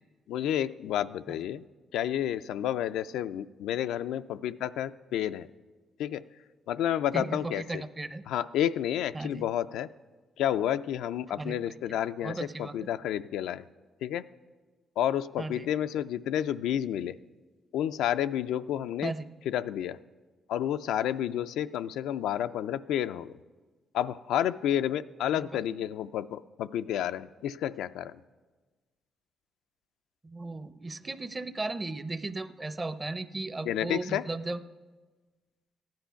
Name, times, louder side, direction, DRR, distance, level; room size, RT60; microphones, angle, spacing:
voice 1, 0.3-1.6 1.9-5.5 6.0-6.2 6.7-7.8 8.3-9.9 10.4-13.6 14.0-14.3 15.0-17.1 17.7-19.1 19.5-20.0 20.5-23.3 23.9-28.1 33.6-34.2, left 11 dB, 90° left, 11 dB, 0.3 m, -30 dB
voice 2, 7.1-8.2 9.1-9.4 11.4-11.6 12.2-12.8 15.4-15.7 19.0-19.3 25.5-25.6 30.2-34.6, right 2 dB, 25° right, 13 dB, 0.6 m, -36 dB
14.5 x 10.5 x 5.7 m, 1.3 s
cardioid pair, 90°, 0 cm